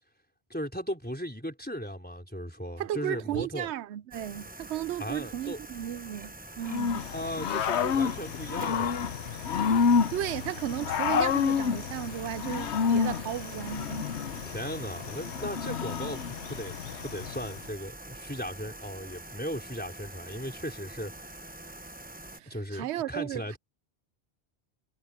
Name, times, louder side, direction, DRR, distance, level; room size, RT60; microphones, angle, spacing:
voice 1, 0.5-3.7 5.0-5.6 7.1-9.0 14.4-21.4 22.5-23.6, equal, 10° left, 4.0 m, -37 dB
voice 2, 2.8-7.1 10.1-14.1 22.3-23.6, right 12 dB, 85° right, 0.9 m, -35 dB
sound 1, 4.1-22.4, right 1 dB, 10° right, 0.7 m, -45 dB
Growling / Cricket, 6.7-17.6, left 6 dB, 85° left, 1.1 m, -29 dB
omnidirectional pair, 1.1 m